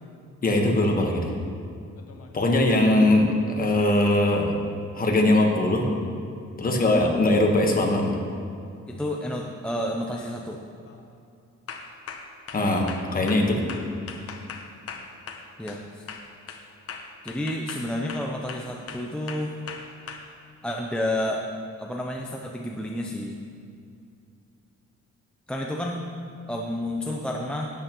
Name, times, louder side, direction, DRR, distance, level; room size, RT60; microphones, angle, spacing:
voice 1, 0.4-1.3 2.3-4.5 4.9-5.9 6.6-8.1 12.5-13.6, left 1 dB, 30° left, 1 dB, 1.2 m, -21 dB
sound 1, 2.0-2.7 6.9-7.0 8.5-8.8 9.2-9.6 10.0-10.4 10.8-11.1 11.7-15.8 16.1-20.2, left 6 dB, 50° left, 0.9 m, -40 dB
voice 2, 8.9-10.6 15.6-16.0 17.2-19.5 20.6-21.4 21.8-23.4 25.5-26.0 26.5-27.7, left 1 dB, 5° left, -1 dB, 0.5 m, -30 dB
12.5 x 8.9 x 3.0 m, 2.5 s
wide cardioid pair, 145°, 29 cm